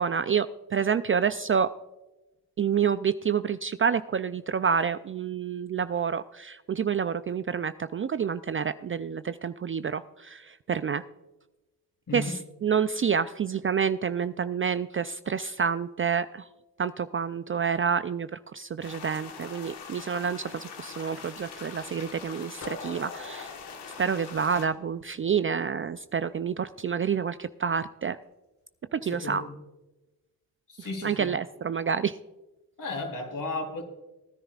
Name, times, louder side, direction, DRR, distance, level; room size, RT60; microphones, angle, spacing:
voice 1, 0.0-1.7 2.6-11.0 12.1-16.5 16.8-23.5 24.0-28.2 28.9-29.4 30.8-32.2, right 7 dB, 35° right, 13 dB, 0.4 m, -28 dB
sound 1, 18.8-24.7, left 6 dB, 75° left, 1.6 m, -43 dB
sound 2, 22.6-25.5, left 3 dB, 35° left, 1.4 m, -43 dB
voice 2, 29.0-29.5 30.7-31.3 32.8-33.8, left 2 dB, 55° left, 1 dB, 3.6 m, -34 dB
19.5 x 10.0 x 2.4 m, 1.1 s
supercardioid pair, 55°, 41 cm